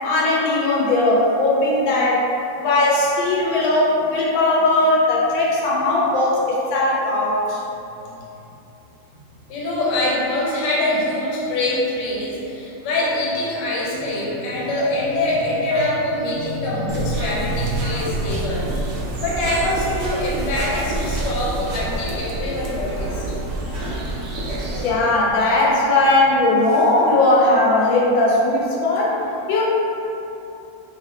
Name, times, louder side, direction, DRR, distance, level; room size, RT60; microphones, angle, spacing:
voice 1, 0.0-2.2 2.6-7.6 24.8-29.2 29.5-29.6, left 2 dB, 85° left, -4 dB, 1.4 m, -18 dB
voice 2, 9.5-18.8 19.2-23.2, left 1 dB, 70° left, -5 dB, 1.3 m, -24 dB
sound 1, 15.7-16.0 17.2-17.4 17.8-18.1 19.5-19.7 20.0-20.2 20.6-20.8, right 4 dB, 90° right, 1.3 m, -36 dB
sound 2, 16.9-24.9, right 1 dB, 75° right, 0.6 m, -27 dB
4.2 x 3.1 x 2.7 m, 2.9 s
omnidirectional pair, 2.1 m